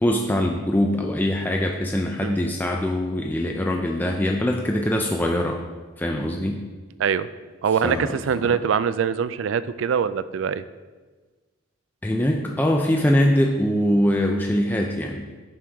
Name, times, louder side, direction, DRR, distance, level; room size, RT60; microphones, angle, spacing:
voice 1, 0.0-5.6 6.0-6.6 7.8-8.5 12.0-15.3, left 1 dB, 10° left, 1 dB, 0.4 m, -23 dB
voice 2, 7.6-10.6, right 7 dB, 75° right, 15 dB, 0.3 m, -23 dB
9.6 x 6.3 x 3.5 m, 1.3 s
head